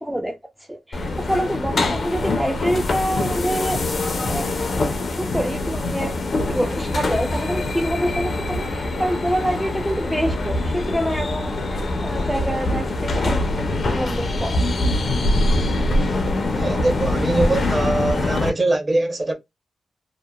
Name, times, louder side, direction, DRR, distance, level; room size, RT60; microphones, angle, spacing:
voice 1, 0.0-3.8 4.3-4.5 5.2-6.1 6.5-14.6, equal, 5° right, 0.4 m, -26 dB
sound 1, 0.9-18.5, left 2 dB, 50° left, 0.5 m, -23 dB
voice 2, 16.5-19.3, right 2 dB, 30° right, 0.8 m, -22 dB
2.8 x 2.1 x 2.2 m
cardioid pair, 95°, 0 cm